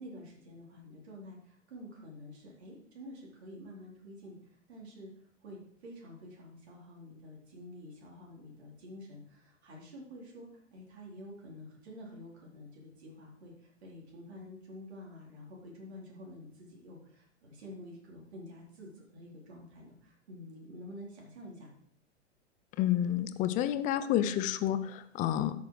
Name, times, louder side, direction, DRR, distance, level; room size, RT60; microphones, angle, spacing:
voice 1, 0.0-4.4 4.7-5.1 5.4-21.7, left 1 dB, 60° right, -2 dB, 4.2 m, -49 dB
voice 2, 22.8-25.5, left 11 dB, 20° left, 12 dB, 0.6 m, -29 dB
12.5 x 7.0 x 4.8 m, 0.65 s
figure-of-eight pair, 110°, 37 cm